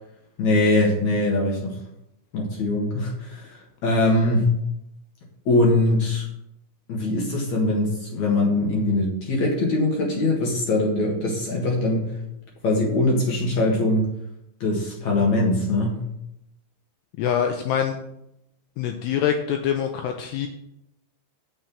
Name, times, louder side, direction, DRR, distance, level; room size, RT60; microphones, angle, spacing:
voice 1, 0.4-1.8 2.3-4.5 5.5-6.3 6.9-12.2 12.6-14.0 14.6-16.0, left 2 dB, 55° left, -1 dB, 2.2 m, -22 dB
voice 2, 17.2-18.0 18.8-20.5, left 8 dB, 85° left, 5 dB, 2.4 m, -24 dB
7.5 x 6.7 x 7.3 m, 0.80 s
omnidirectional pair, 5.4 m